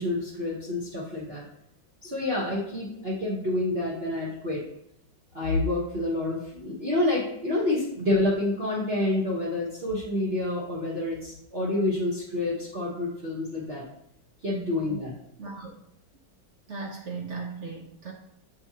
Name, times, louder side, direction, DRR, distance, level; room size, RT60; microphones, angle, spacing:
voice 1, 0.0-1.4 2.0-4.6 5.3-13.8 14.4-15.1, left 2 dB, 35° right, -7 dB, 1.2 m, -28 dB
voice 2, 15.4-15.7 16.7-18.1, right 4 dB, 55° right, 0 dB, 0.8 m, -37 dB
7.4 x 3.6 x 4.1 m, 0.76 s
omnidirectional pair, 2.0 m